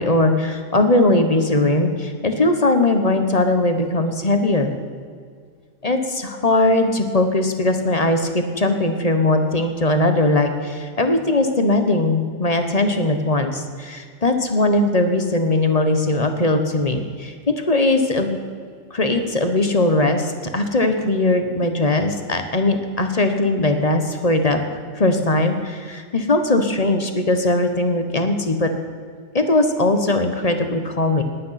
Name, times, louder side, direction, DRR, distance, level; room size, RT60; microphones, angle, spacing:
voice 1, 0.0-4.7 5.8-18.4 18.9-24.6 24.9-28.7 29.3-31.2, left 2 dB, 30° left, 6 dB, 1.1 m, -19 dB
19.5 x 9.1 x 5.8 m, 2.1 s
omnidirectional pair, 1.4 m